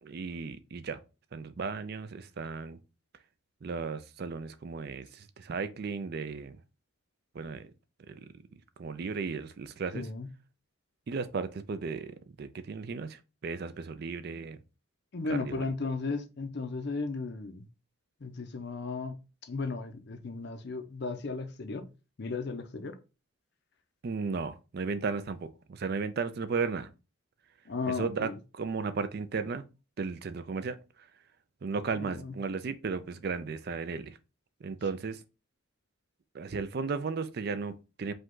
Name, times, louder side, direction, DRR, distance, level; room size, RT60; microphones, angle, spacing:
voice 1, 0.0-1.0 1.3-2.8 3.6-6.6 7.3-7.7 8.1-8.2 8.8-10.1 11.1-14.6 15.3-15.7 24.0-26.9 28.0-28.3 28.6-29.6 30.0-31.1 31.6-34.2 34.6-35.2 36.3-38.1, right 4 dB, 45° right, 0.4 m, -35 dB
voice 2, 9.9-10.3 15.1-17.7 18.2-19.2 19.4-21.9 22.2-23.0 27.7-28.4 31.9-32.3, left 3 dB, 50° left, 0.6 m, -35 dB
5.1 x 2.3 x 3.7 m
head